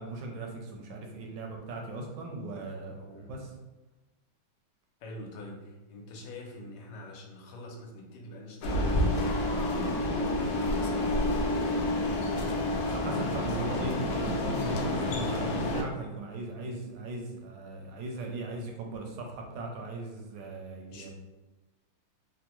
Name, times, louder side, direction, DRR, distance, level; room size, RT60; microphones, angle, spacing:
voice 1, 0.0-3.5 12.9-21.1, right 2 dB, 75° right, 1 dB, 1.1 m, -38 dB
voice 2, 5.0-11.2 20.9-21.1, left 1 dB, 70° left, 0 dB, 1.1 m, -45 dB
sound 1, 8.6-15.8, left 1 dB, 85° left, 0.8 m, -29 dB
3.4 x 2.1 x 2.9 m, 1.1 s
omnidirectional pair, 2.2 m